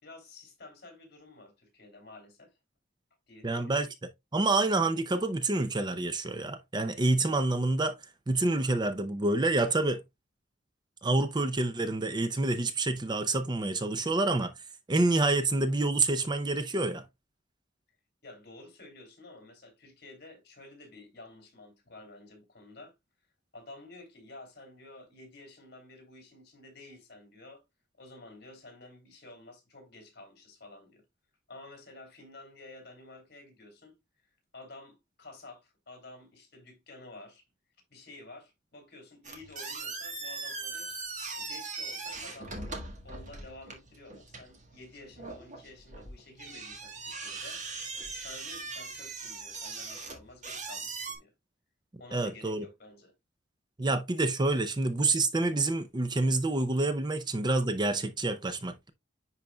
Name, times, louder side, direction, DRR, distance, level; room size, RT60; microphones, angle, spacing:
voice 1, 0.0-2.6 3.3-3.9 18.2-22.9 23.5-27.6 28.0-31.0 31.5-34.3 34.5-37.4 37.9-40.9 41.3-47.6 48.2-51.3 52.0-53.1, left 2 dB, 55° left, 2.7 m, -51 dB
voice 2, 3.4-3.9 4.3-8.0 8.3-10.0 11.0-14.5 14.9-17.0 52.1-52.6 53.8-58.9, right 2 dB, 25° right, 0.5 m, -27 dB
sound 1, 39.2-51.2, right 3 dB, 40° right, 1.6 m, -40 dB
10.0 x 4.1 x 2.2 m
head